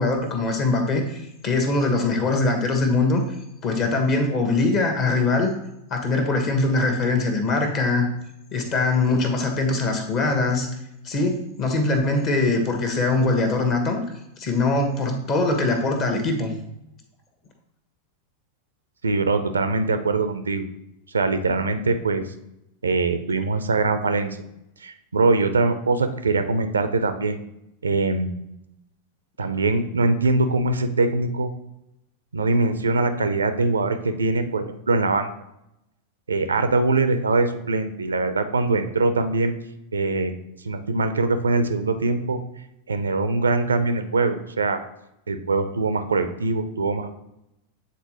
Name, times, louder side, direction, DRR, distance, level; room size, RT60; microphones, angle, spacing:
voice 1, 0.0-3.2 3.6-5.5 5.9-8.1 8.5-10.7 11.0-14.0 14.4-16.5, left 3 dB, 35° left, 4 dB, 1.2 m, -22 dB
voice 2, 19.0-20.7 21.1-22.3 22.8-24.4 24.8-27.4 27.8-28.4 29.4-31.5 32.3-35.3 36.3-39.5 39.9-40.3 40.6-42.4 42.9-44.8 45.3-47.1, right 3 dB, 75° right, 9 dB, 0.5 m, -22 dB
8.4 x 3.9 x 3.0 m, 0.84 s
figure-of-eight pair, 90°, 0 cm